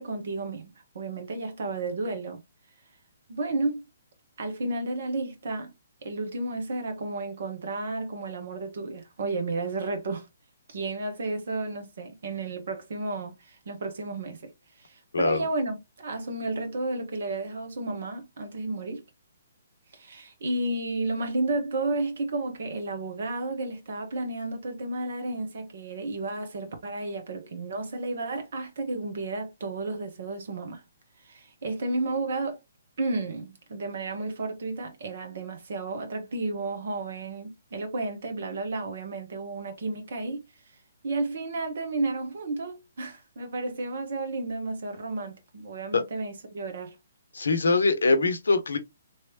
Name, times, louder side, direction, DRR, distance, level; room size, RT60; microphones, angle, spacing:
voice 1, 0.0-2.4 3.3-3.8 4.4-5.7 6.0-10.3 10.7-14.5 14.8-19.0 19.9-30.8 31.2-32.6 33.0-40.4 41.0-46.9, right 2 dB, 55° right, 1.1 m, -32 dB
voice 2, 47.3-48.8, left 3 dB, 65° left, 0.7 m, -23 dB
3.3 x 3.1 x 2.8 m
figure-of-eight pair, 130°, 0 cm